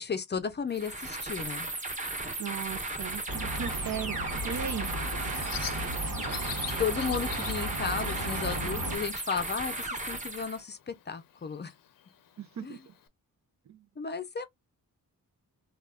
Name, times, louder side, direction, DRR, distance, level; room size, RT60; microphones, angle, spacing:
voice 1, 0.0-1.7 6.0-6.2 6.8-11.7 12.6-12.8 14.0-14.5, left 6 dB, 30° left, 0.5 m, -34 dB
sound 1, 0.7-10.6, right 2 dB, 20° right, 1.1 m, -36 dB
voice 2, 2.4-4.9 12.4-12.9 13.7-13.8, right 8 dB, 55° right, 0.5 m, -37 dB
sound 2, 3.3-9.0, right 1 dB, 75° right, 1.2 m, -35 dB
Bird, 4.1-13.1, left 10 dB, 70° left, 0.6 m, -46 dB
3.4 x 2.4 x 2.3 m
cardioid pair, 90°, 35 cm